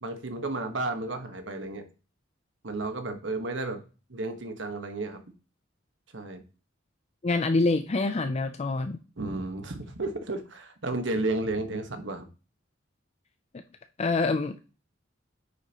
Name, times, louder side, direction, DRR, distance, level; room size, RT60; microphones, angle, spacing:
voice 1, 0.0-1.8 2.6-3.8 4.1-5.2 6.1-6.4 9.2-12.3, right 2 dB, 70° right, 7 dB, 1.4 m, -32 dB
voice 2, 7.2-9.0 14.0-14.7, left 3 dB, 35° left, 8 dB, 0.5 m, -26 dB
9.4 x 6.8 x 3.0 m, 0.35 s
head